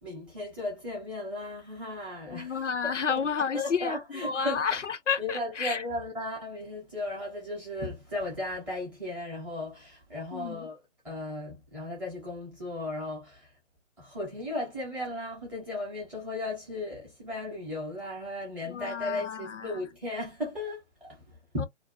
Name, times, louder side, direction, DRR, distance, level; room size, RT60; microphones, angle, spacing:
voice 1, 0.0-3.2 3.5-4.6 5.2-10.8 11.0-13.6 14.0-21.7, left 2 dB, 5° right, 0.5 m, -36 dB
voice 2, 2.3-5.8 10.3-10.7 18.6-19.8 21.6-21.7, left 6 dB, 90° left, 0.6 m, -31 dB
2.5 x 2.1 x 2.6 m
figure-of-eight pair, 140°, 36 cm